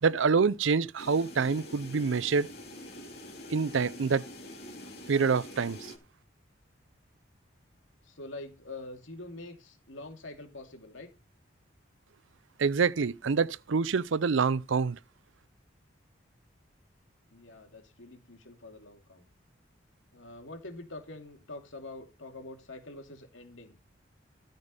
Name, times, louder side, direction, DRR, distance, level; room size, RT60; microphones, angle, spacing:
voice 1, 0.0-2.5 3.5-4.2 5.1-5.9 12.6-15.0, right 5 dB, 75° right, 0.5 m, -26 dB
sound 1, 1.0-6.0, left 1 dB, 50° left, 2.8 m, -45 dB
voice 2, 8.0-11.1 17.3-19.3 20.1-23.8, left 2 dB, 75° left, 2.7 m, -45 dB
13.5 x 5.2 x 5.5 m
head